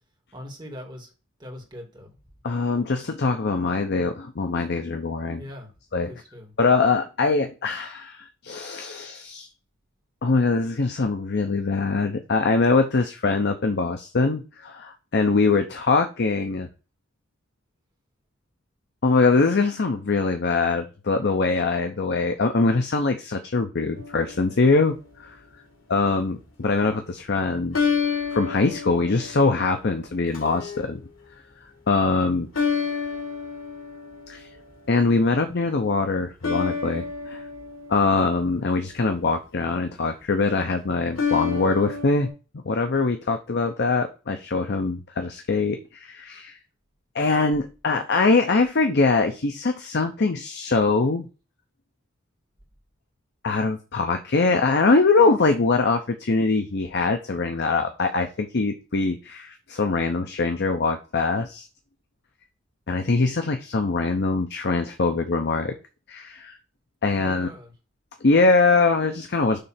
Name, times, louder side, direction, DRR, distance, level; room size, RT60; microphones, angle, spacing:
voice 1, 0.3-1.1 1.4-2.2 5.4-5.7 6.1-6.5 67.1-67.7, left 1 dB, 20° right, 0 dB, 2.3 m, -41 dB
voice 2, 2.4-5.4 5.9-6.1 6.6-9.5 10.2-16.7 19.0-25.4 25.9-27.8 28.3-31.0 31.9-32.5 34.3-34.5 34.9-37.4 37.9-42.3 42.6-46.6 47.1-51.3 53.4-61.7 62.9-65.7 66.1-66.6 67.0-67.5 68.2-69.6, left 3 dB, 55° left, 6 dB, 0.7 m, -23 dB
sound 1, 23.9-24.8 27.7-29.8 30.3-30.8 32.5-34.5 36.4-38.9 41.1-42.3, left 6 dB, 80° left, 1.9 m, -29 dB
6.8 x 3.3 x 5.7 m, 0.33 s
head